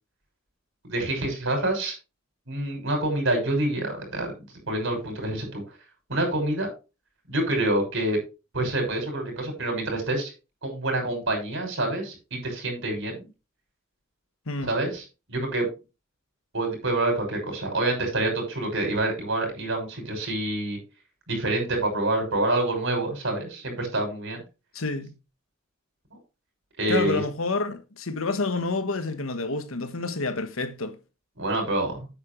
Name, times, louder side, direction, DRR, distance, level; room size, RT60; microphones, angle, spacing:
voice 1, 0.8-1.9 2.5-4.3 4.6-5.6 6.1-6.7 7.3-8.2 8.5-10.3 10.6-13.2 14.6-15.7 16.5-20.8 21.3-24.4 26.8-27.2 31.4-32.1, right 2 dB, 65° right, 6.2 m, -27 dB
voice 2, 24.7-25.1 26.9-31.0, left 3 dB, 75° left, 1.4 m, -28 dB
10.0 x 8.8 x 3.2 m
head